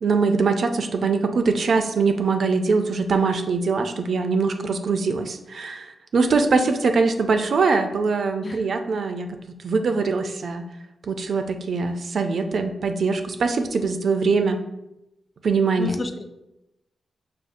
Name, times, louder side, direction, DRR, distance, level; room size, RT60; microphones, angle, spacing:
voice 1, 0.0-10.6 11.1-14.6 15.4-16.0, right 4 dB, 65° right, 7 dB, 0.3 m, -22 dB
voice 2, 15.8-16.3, left 3 dB, 35° left, 6 dB, 0.4 m, -31 dB
4.9 x 2.3 x 2.5 m, 0.91 s
cardioid pair, 70°, 0 cm